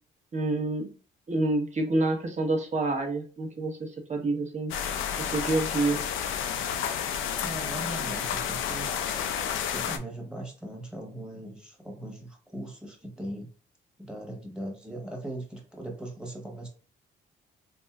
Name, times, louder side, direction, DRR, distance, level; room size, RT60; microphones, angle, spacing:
voice 1, 0.3-0.9 1.3-4.7 5.2-6.0, right 2 dB, 35° right, 2 dB, 0.9 m, -28 dB
sound 1, 4.7-10.0, left 8 dB, 80° left, 0.4 m, -31 dB
voice 2, 7.4-8.9 9.6-13.5 14.0-16.7, right 1 dB, 5° right, 0 dB, 1.1 m, -39 dB
3.4 x 2.6 x 2.3 m, 0.39 s
cardioid pair, 90°, 20 cm